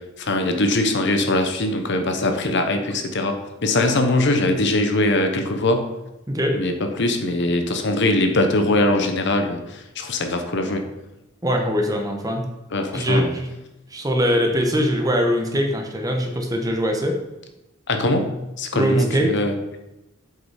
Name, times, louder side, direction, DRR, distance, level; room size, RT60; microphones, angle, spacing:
voice 1, 0.2-5.8 6.5-10.8 12.7-13.3 17.9-18.3 18.6-19.5, left 2 dB, 60° left, 6 dB, 0.9 m, -21 dB
voice 2, 6.3-6.6 11.4-12.4 12.9-13.5 13.9-17.2 18.7-19.3, equal, 20° right, 3 dB, 1.0 m, -22 dB
7.8 x 5.3 x 4.9 m, 0.98 s
head